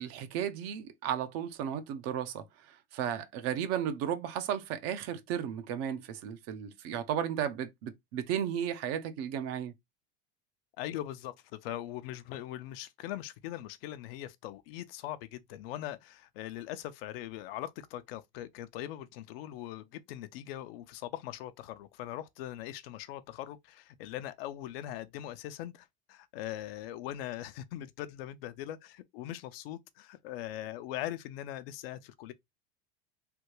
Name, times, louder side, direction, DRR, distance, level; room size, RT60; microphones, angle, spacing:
voice 1, 0.0-2.4 2.9-9.7, right 9 dB, 55° right, 0.7 m, -34 dB
voice 2, 10.8-32.3, left 13 dB, 75° left, 0.6 m, -41 dB
3.4 x 2.2 x 3.0 m
supercardioid pair, 105°, 30 cm